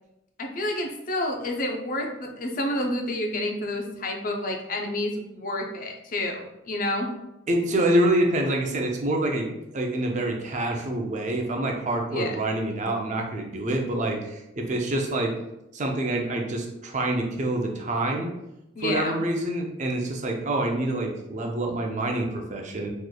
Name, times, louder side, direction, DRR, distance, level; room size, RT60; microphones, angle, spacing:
voice 1, 0.4-7.1 12.1-12.3 18.8-19.1, left 1 dB, 45° left, 2 dB, 0.5 m, -29 dB
voice 2, 7.5-9.4 9.7-15.3 15.7-18.3 18.8-22.9, right 1 dB, 40° right, 1 dB, 0.5 m, -26 dB
3.8 x 3.1 x 2.2 m, 0.89 s
head